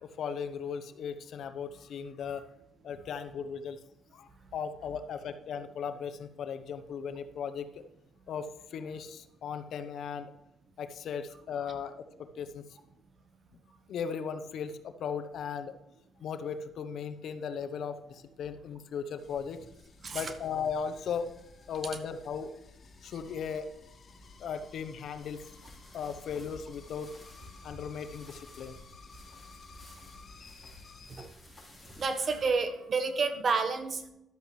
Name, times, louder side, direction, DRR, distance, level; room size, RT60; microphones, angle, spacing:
voice 1, 0.0-2.4 2.8-3.8 4.1-7.7 8.3-10.3 10.8-12.6 13.9-15.7 16.2-19.6 20.0-21.3 21.7-22.5 23.0-23.7 24.4-25.4 25.9-27.1 27.6-28.8, left 6 dB, 70° left, 9 dB, 0.8 m, -37 dB
sound 1, 19.2-31.3, left 5 dB, 45° left, 1.9 m, -54 dB
sound 2, 25.2-32.5, left 1 dB, 10° left, 3.7 m, -54 dB
voice 2, 32.0-34.1, right 4 dB, 45° right, 8 dB, 1.2 m, -30 dB
11.5 x 8.2 x 3.2 m, 0.84 s
cardioid pair, 90°, 0 cm